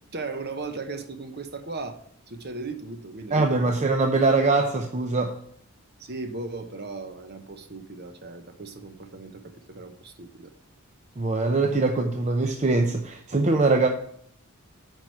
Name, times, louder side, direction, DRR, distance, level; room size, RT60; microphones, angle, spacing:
voice 1, 0.1-2.0 2.3-3.8 6.0-10.5, right 3 dB, 50° right, 8 dB, 1.0 m, -37 dB
voice 2, 3.3-5.4 11.2-13.9, right 3 dB, 35° right, 4 dB, 0.6 m, -22 dB
9.1 x 4.8 x 5.9 m, 0.64 s
head